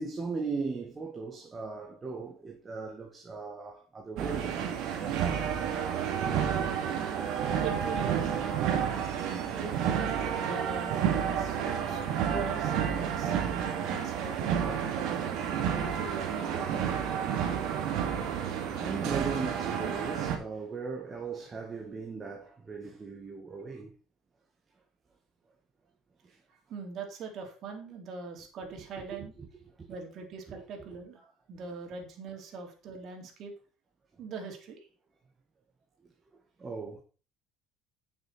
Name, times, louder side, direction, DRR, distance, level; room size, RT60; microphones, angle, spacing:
voice 1, 0.0-4.6 17.2-17.3 17.6-18.1 18.7-23.9 26.2-26.4 29.0-29.3 29.8-29.9 30.5-30.6 36.6-37.0, right 4 dB, 25° right, 1.8 m, -38 dB
sound 1, 4.2-20.4, right 8 dB, 70° right, 2.3 m, -30 dB
voice 2, 7.6-9.8 10.2-13.4 13.8-15.4 15.8-17.1 26.7-29.3 29.9-31.2 31.5-33.5 34.2-34.9, right 4 dB, 55° right, 3.4 m, -42 dB
9.6 x 6.9 x 4.5 m
cardioid pair, 115°, 0 cm